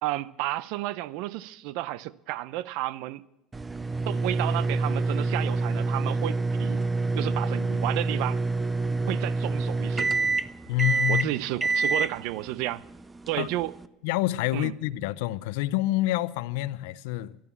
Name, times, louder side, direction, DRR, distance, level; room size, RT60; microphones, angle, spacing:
voice 1, 0.0-3.2 4.1-6.8 7.1-8.4 9.1-10.1 11.1-12.8 13.3-13.7 14.5-14.7, right 16 dB, 75° right, 0.5 m, -32 dB
sound 1, 3.5-13.9, right 3 dB, 15° right, 0.5 m, -27 dB
voice 2, 10.7-11.3 13.4-13.5 14.0-17.4, left 15 dB, 85° left, 0.4 m, -27 dB
12.0 x 11.0 x 7.3 m
cardioid pair, 130°, 0 cm